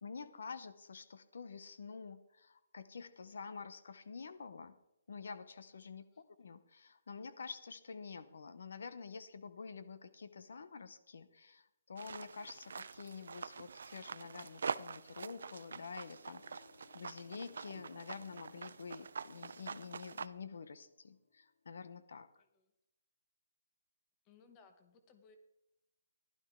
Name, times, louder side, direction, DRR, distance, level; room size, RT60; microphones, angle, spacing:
voice 1, 0.0-4.8 5.1-6.1 6.4-16.6 16.9-22.3, left 5 dB, 65° left, 13 dB, 0.8 m, -48 dB
sound 1, 12.0-20.3, right 5 dB, 65° right, 0.5 m, -45 dB
sound 2, 16.0-21.9, left 5 dB, 85° left, 1.9 m, -66 dB
voice 2, 22.4-22.7 24.2-25.4, left 5 dB, 15° left, 8 dB, 1.0 m, -64 dB
15.0 x 11.5 x 3.7 m, 0.91 s
hypercardioid pair, 175°, 0 cm